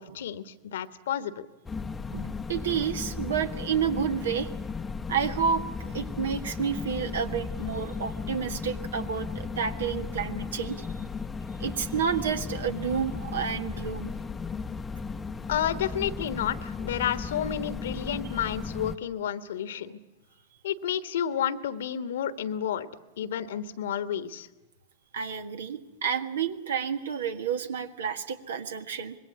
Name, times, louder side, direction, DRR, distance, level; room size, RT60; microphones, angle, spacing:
voice 1, 0.0-1.5 15.5-20.0 20.6-22.9 23.2-24.5, left 9 dB, 60° left, 13 dB, 1.3 m, -31 dB
sound 1, 1.7-19.0, left 4 dB, 15° left, 0.9 m, -35 dB
voice 2, 2.1-4.5 5.1-11.0 11.6-14.1 25.1-29.2, right 7 dB, 65° right, 9 dB, 1.7 m, -30 dB
25.0 x 21.5 x 8.3 m, 1.1 s
figure-of-eight pair, 90°, 0 cm